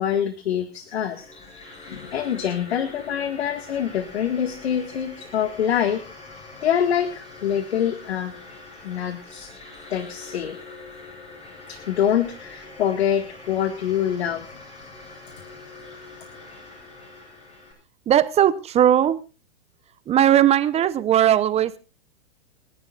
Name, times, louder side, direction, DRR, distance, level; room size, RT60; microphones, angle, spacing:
voice 1, 0.0-6.0 6.6-8.3 8.8-9.5 9.9-10.6 11.7-14.5, left 9 dB, 75° left, 9 dB, 1.9 m, -25 dB
sound 1, 0.7-17.7, left 3 dB, 20° left, 7.8 m, -43 dB
voice 2, 18.1-19.2 20.1-21.8, right 11 dB, 20° right, 14 dB, 0.9 m, -18 dB
29.5 x 11.0 x 2.5 m, 0.31 s
hypercardioid pair, 130°, 32 cm